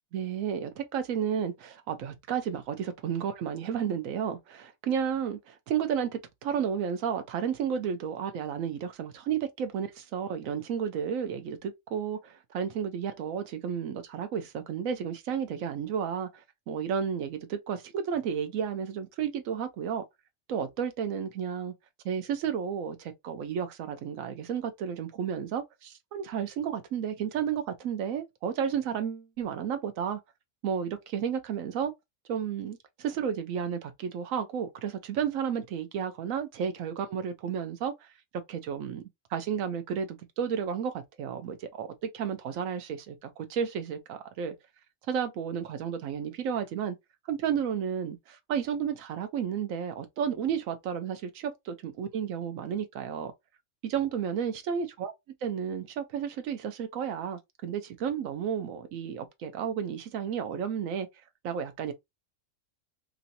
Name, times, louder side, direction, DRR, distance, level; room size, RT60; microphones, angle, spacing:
voice 1, 0.1-20.0 20.5-21.7 22.0-30.2 30.6-31.9 32.3-37.9 38.5-39.0 39.3-44.6 45.1-47.0 47.3-53.3 53.8-55.1 55.4-61.1 61.4-61.9, right 7 dB, 90° right, 1.1 m, -32 dB
3.1 x 2.6 x 2.6 m
omnidirectional pair, 1.4 m